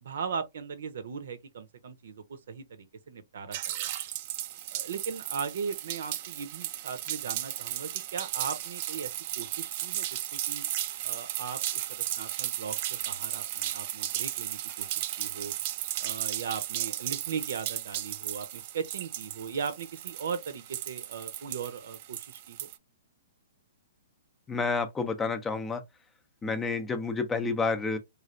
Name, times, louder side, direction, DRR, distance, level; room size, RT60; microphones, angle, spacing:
voice 1, 0.0-3.6 4.7-9.1 9.4-10.6 11.0-15.5 16.0-22.7, right 6 dB, 70° right, 0.7 m, -38 dB
sound 1, 3.5-22.8, right 13 dB, 45° right, 0.3 m, -35 dB
voice 2, 24.5-25.8 26.4-28.0, left 4 dB, 15° left, 0.5 m, -29 dB
3.2 x 2.4 x 2.5 m
hypercardioid pair, 140°, 0 cm